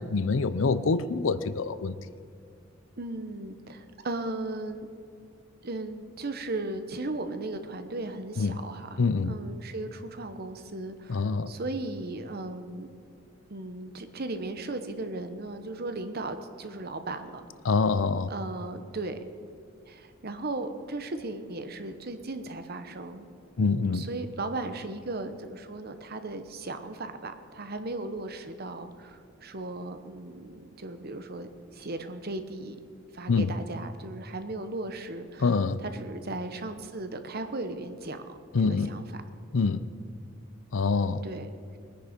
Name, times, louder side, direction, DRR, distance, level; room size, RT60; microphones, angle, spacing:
voice 1, 0.0-2.0 8.4-8.6 9.0-9.4 11.1-11.5 17.6-18.3 23.6-24.0 33.3-33.5 35.4-35.8 38.5-38.9 39.5-39.9 40.7-41.2, left 4 dB, 75° left, 0.6 m, -25 dB
voice 2, 3.0-4.9 5.6-12.9 13.5-17.5 18.3-19.2 19.9-23.3 23.6-32.8 33.1-39.2 41.2-41.5, right 2 dB, 50° right, 1.0 m, -37 dB
21.0 x 10.5 x 5.2 m
head